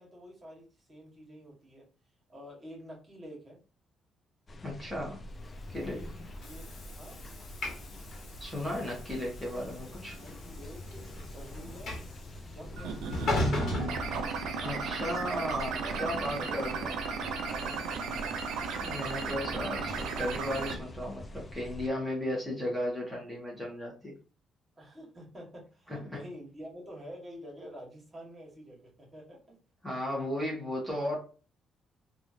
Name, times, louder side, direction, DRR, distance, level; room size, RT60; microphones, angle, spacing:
voice 1, 0.0-1.9 2.3-3.6 5.8-7.2 10.1-12.0 12.4-13.4 15.7-16.7 17.5-18.7 24.8-29.6, equal, 25° right, -1 dB, 1.6 m, -48 dB
sound 1, 4.5-21.9, left 1 dB, 30° left, 0.4 m, -46 dB
voice 2, 4.6-5.2 5.7-6.0 8.4-10.2 14.6-16.9 18.8-24.1 25.9-26.2 29.8-31.2, left 1 dB, 5° left, -3 dB, 1.1 m, -35 dB
Train / Sliding door, 5.6-14.8, left 1 dB, 65° left, 1.3 m, -37 dB
sound 2, 12.8-20.7, right 5 dB, 85° right, 0.5 m, -35 dB
3.1 x 2.4 x 2.6 m, 0.36 s
cardioid pair, 90°, 0 cm